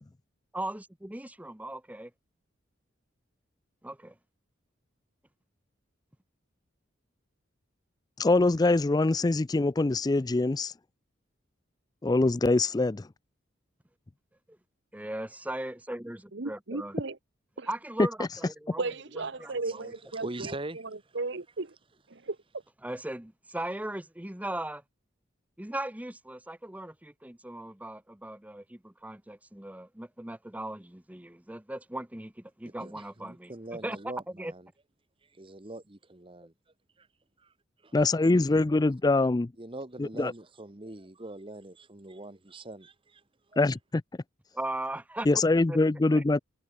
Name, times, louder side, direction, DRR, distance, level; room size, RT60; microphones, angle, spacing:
voice 1, 0.5-2.1 3.8-4.1 14.9-17.0 17.7-18.8 19.4-19.9 22.8-24.8 25.6-34.5 44.5-45.3 45.7-45.8 46.1-46.2, right 1 dB, 10° right, 0.9 m, -38 dB
voice 2, 8.2-10.7 12.0-13.1 37.9-39.5 40.0-40.3 43.6-44.0 45.3-46.4, left 2 dB, 20° left, 0.4 m, -24 dB
voice 3, 16.3-17.2 17.6-17.7 18.8-20.5 21.1-21.7 22.1-22.4, right 3 dB, 65° right, 1.1 m, -35 dB
voice 4, 19.4-20.8 21.1-21.2 32.6-34.7 35.3-36.5 37.0-37.1 37.4-37.5 37.8-37.9 38.2-38.6 39.6-43.2 43.5-43.6, right 2 dB, 25° right, 1.4 m, -43 dB
head